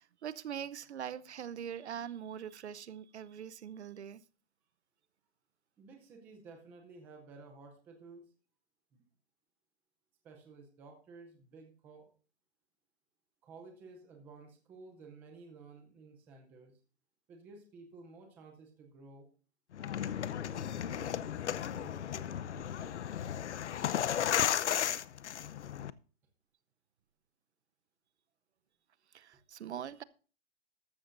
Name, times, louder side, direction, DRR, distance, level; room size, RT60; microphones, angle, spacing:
voice 1, 0.0-4.2 29.1-30.0, right 9 dB, 65° right, 0.8 m, -42 dB
voice 2, 5.8-8.2 8.9-9.0 10.2-12.1 13.4-16.8 17.3-19.3 19.9-22.9, right 3 dB, 5° right, 0.6 m, -54 dB
sound 1, 19.7-25.9, left 10 dB, 70° left, 0.7 m, -34 dB
13.5 x 13.0 x 2.6 m
hypercardioid pair, 165°, 35 cm